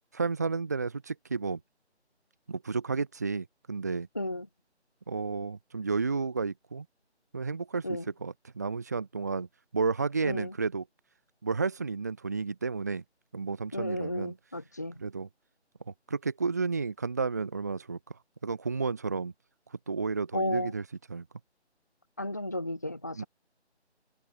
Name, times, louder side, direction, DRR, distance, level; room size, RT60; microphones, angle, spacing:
voice 1, 0.1-1.6 2.5-4.1 5.1-6.8 7.3-9.5 9.7-10.8 11.4-13.0 13.3-14.3 15.0-15.3 15.9-18.0 18.4-19.3 19.9-20.8 21.1-21.2 23.2-23.3, right 4 dB, 15° right, 2.9 m, -32 dB
voice 2, 4.1-4.5 7.8-8.1 10.2-10.5 13.7-15.0 20.3-20.7 22.2-23.2, left 1 dB, 15° left, 1.5 m, -33 dB
figure-of-eight pair, 180°, 34 cm